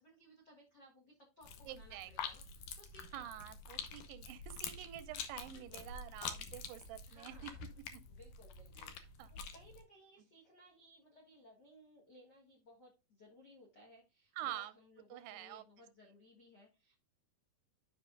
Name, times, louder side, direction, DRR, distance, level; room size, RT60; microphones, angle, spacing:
voice 1, 0.0-3.4 5.5-5.9 7.0-7.7 8.1-16.9, equal, 90° left, 0.9 m, -62 dB
sound 1, 1.4-9.8, left 6 dB, 75° left, 1.9 m, -47 dB
voice 2, 1.7-2.1 3.1-7.5 7.9-8.0 8.8-8.9 9.2-9.3 14.4-14.7 15.1-15.6, right 12 dB, 90° right, 2.8 m, -47 dB
12.0 x 5.1 x 2.5 m
omnidirectional pair, 4.6 m